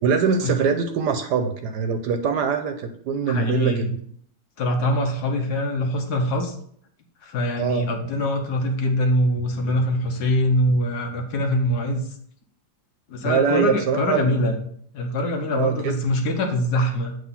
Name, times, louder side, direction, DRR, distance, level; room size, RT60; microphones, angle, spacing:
voice 1, 0.0-3.9 7.6-7.9 13.2-14.4 15.5-15.9, right 6 dB, 70° right, 7 dB, 1.1 m, -23 dB
voice 2, 3.3-3.9 4.6-6.6 7.2-12.0 13.1-14.6 14.9-17.2, left 1 dB, 65° left, 3 dB, 1.3 m, -23 dB
7.8 x 3.0 x 5.5 m, 0.63 s
omnidirectional pair, 2.1 m